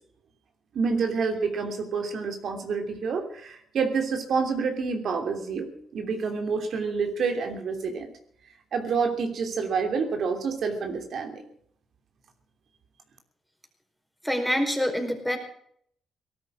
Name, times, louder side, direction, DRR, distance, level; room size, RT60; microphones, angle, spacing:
voice 1, 0.7-8.1 8.7-11.4, right 5 dB, 60° right, 5 dB, 3.0 m, -28 dB
voice 2, 14.2-15.4, equal, ahead, 4 dB, 4.7 m, -26 dB
18.5 x 12.5 x 6.2 m, 0.65 s
cardioid pair, 90°, 0 cm